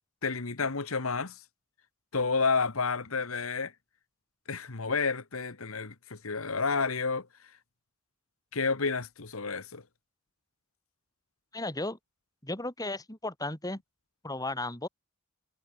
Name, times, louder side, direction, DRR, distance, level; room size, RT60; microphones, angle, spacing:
voice 1, 0.2-1.4 2.1-3.7 4.5-7.3 8.5-9.8, left 4 dB, 70° left, 1.5 m, -30 dB
voice 2, 11.5-12.0 12.4-13.8 14.2-14.9, left 2 dB, 15° left, 4.9 m, -34 dB
head